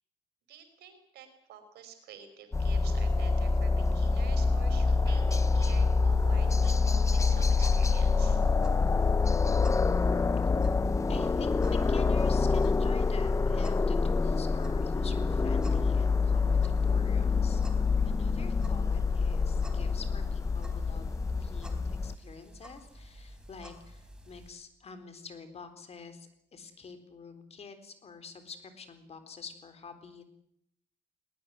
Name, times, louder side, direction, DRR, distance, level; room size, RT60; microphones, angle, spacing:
voice 1, 0.5-8.4, right 8 dB, 75° right, 8 dB, 5.4 m, -50 dB
sound 1, 2.5-22.1, left 4 dB, 20° left, 0.8 m, -26 dB
sound 2, 6.1-24.5, equal, 5° right, 4.1 m, -51 dB
voice 2, 11.1-17.6 18.0-21.1 21.4-30.2, left 5 dB, 40° left, 9 dB, 3.9 m, -47 dB
19.5 x 19.5 x 9.5 m, 0.75 s
cardioid pair, 110°, 17 cm